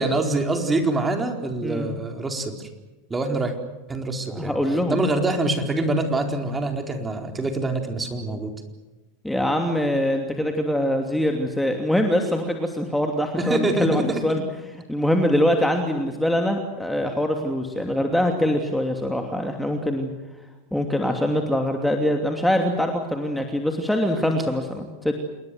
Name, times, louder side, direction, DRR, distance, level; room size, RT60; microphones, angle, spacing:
voice 1, 0.0-2.7 3.1-3.5 3.9-4.6 4.9-8.5 13.4-14.2, right 2 dB, 15° right, 5 dB, 4.3 m, -25 dB
voice 2, 1.6-2.0 4.3-5.0 9.2-14.4 14.9-20.1 20.7-25.2, equal, 5° left, 3 dB, 2.8 m, -23 dB
28.5 x 21.5 x 7.9 m, 1.1 s
hypercardioid pair, 95°, 0 cm